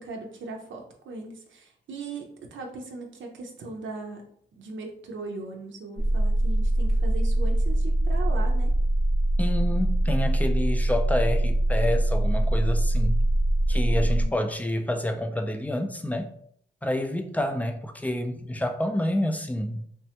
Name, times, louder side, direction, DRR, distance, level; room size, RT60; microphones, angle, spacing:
voice 1, 0.0-4.2 4.6-8.7 13.9-14.4, right 3 dB, 80° right, 1 dB, 0.5 m, -39 dB
sound 1, 6.0-14.2, right 1 dB, 55° left, 0.9 m, -23 dB
voice 2, 9.4-13.2 13.7-16.3 16.8-19.8, left 1 dB, 10° left, 6 dB, 0.3 m, -28 dB
3.2 x 2.1 x 2.8 m, 0.66 s
cardioid pair, 80°, 19 cm